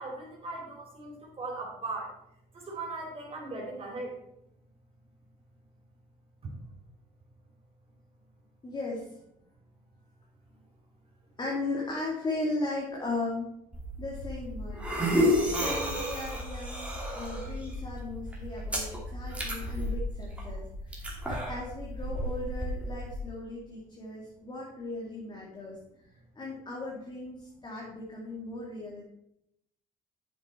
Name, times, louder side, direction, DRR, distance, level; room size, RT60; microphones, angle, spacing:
voice 1, 0.0-2.1 2.5-4.1 6.4-6.5, right 2 dB, 35° right, -2 dB, 3.8 m, -38 dB
voice 2, 8.6-9.1 11.4-13.5 14.0-15.2 15.6-25.8 26.4-29.0, left 2 dB, 25° left, -3 dB, 2.2 m, -37 dB
sound 1, 13.7-23.2, equal, 5° right, 2.7 m, -32 dB
9.0 x 6.9 x 4.3 m, 0.78 s
cardioid pair, 110°, 17 cm